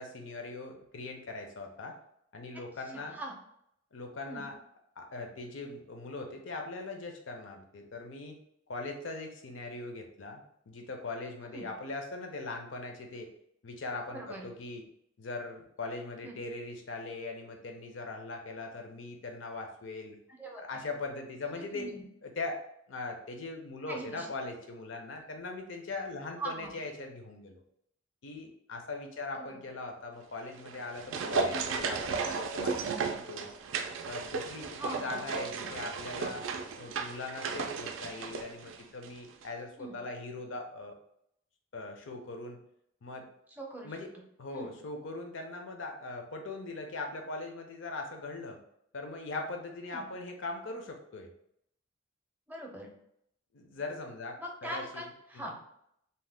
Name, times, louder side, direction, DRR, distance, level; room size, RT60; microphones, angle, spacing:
voice 1, 0.0-2.0 2.3-3.2 3.9-4.5 5.0-8.4 8.7-13.3 13.6-14.8 15.2-20.2 20.6-21.9 22.2-22.6 22.9-27.6 28.2-33.5 34.1-36.4 36.8-40.9 41.7-42.6 43.0-43.3 43.8-44.1 44.4-48.6 48.9-51.3 53.5-55.0 55.3-55.5, left 3 dB, 70° left, 3 dB, 0.6 m, -40 dB
voice 2, 2.9-3.3 4.3-4.5 11.4-11.7 14.1-14.5 16.2-16.4 20.4-20.8 21.5-22.0 23.9-24.3 26.4-26.7 29.3-29.6 31.8-31.9 34.8-35.3 39.8-39.9 43.5-44.0 44.5-44.7 49.9-50.1 52.5-52.9 54.4-55.5, right 1 dB, 10° right, 0 dB, 0.5 m, -42 dB
sound 1, 30.5-39.2 39.4-39.5, right 5 dB, 75° right, 0.3 m, -35 dB
2.7 x 2.1 x 3.3 m, 0.73 s
head